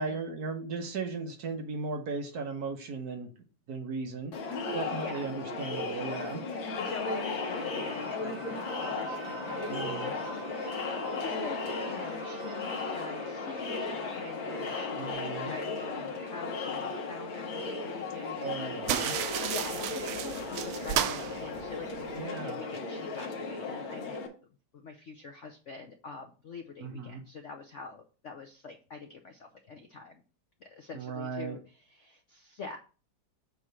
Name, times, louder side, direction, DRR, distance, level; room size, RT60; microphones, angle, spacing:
voice 1, 0.0-3.3 3.7-4.3 4.7-6.4 9.7-10.1 14.9-15.5 18.4-19.1 22.1-22.6 26.8-27.2 30.9-31.6, right 4 dB, 55° right, 4 dB, 1.3 m, -36 dB
Crowd, 4.3-24.3, left 3 dB, 90° left, 2.0 m, -36 dB
voice 2, 4.9-5.3 6.8-10.5 10.8-15.0 15.4-24.2 24.7-30.2 30.6-32.8, left 4 dB, 65° left, 4 dB, 0.7 m, -45 dB
sound 1, 7.4-15.1, right 3 dB, 35° right, 0.4 m, -44 dB
sound 2, 18.8-22.2, right 10 dB, 75° right, 0.8 m, -33 dB
7.9 x 3.1 x 5.6 m, 0.36 s
omnidirectional pair, 2.1 m